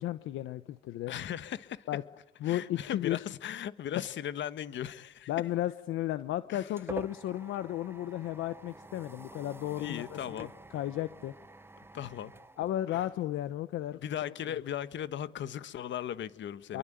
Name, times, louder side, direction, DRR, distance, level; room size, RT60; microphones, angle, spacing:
voice 1, 0.0-1.1 1.9-2.0 2.4-3.2 5.3-10.5 10.7-11.3 12.6-14.0 16.7-16.8, left 13 dB, 85° left, 13 dB, 0.9 m, -34 dB
voice 2, 1.1-1.9 2.4-5.3 6.5-6.7 9.7-10.5 11.9-12.3 12.9-13.1 13.9-16.8, left 10 dB, 70° left, 15 dB, 1.4 m, -38 dB
sound 1, 6.0-13.4, right 2 dB, 10° right, 0.9 m, -48 dB
27.5 x 23.0 x 9.1 m, 1.0 s
cardioid pair, 90°, 20 cm